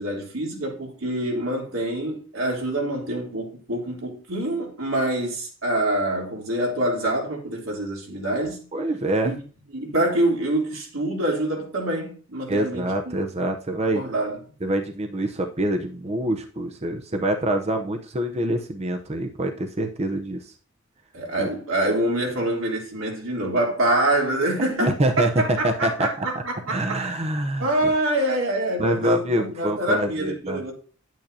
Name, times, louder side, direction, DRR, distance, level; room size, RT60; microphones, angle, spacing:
voice 1, 0.0-8.7 9.2-9.3 9.7-13.2 13.8-14.4 21.1-27.0 27.6-30.7, right 1 dB, 85° right, 3.3 m, -26 dB
voice 2, 8.7-9.3 12.5-14.0 14.6-20.5 21.4-21.5 24.8-25.3 25.6-26.1 26.7-27.9 28.8-30.6, right 1 dB, 30° right, 0.7 m, -25 dB
10.0 x 9.2 x 2.8 m
head